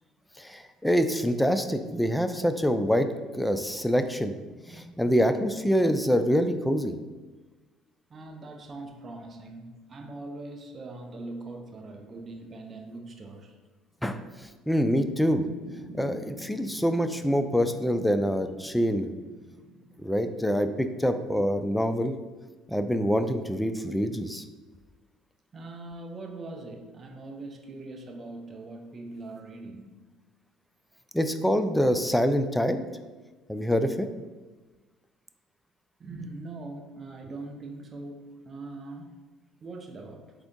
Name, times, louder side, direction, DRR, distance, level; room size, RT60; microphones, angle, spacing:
voice 1, 0.4-3.1 3.3-4.3 4.7-6.9 14.0-14.2 14.7-15.4 16.0-19.1 20.0-22.1 22.7-24.4 31.1-32.8 33.5-34.1, equal, 5° left, 9 dB, 0.3 m, -25 dB
voice 2, 8.1-13.6 25.5-30.0 36.0-39.1 39.6-40.3, right 2 dB, 35° right, 3 dB, 0.6 m, -41 dB
sound 1, 15.2-21.7, right 1 dB, 65° right, 0.8 m, -48 dB
3.7 x 3.4 x 3.7 m, 1.2 s
supercardioid pair, 95°, 0 cm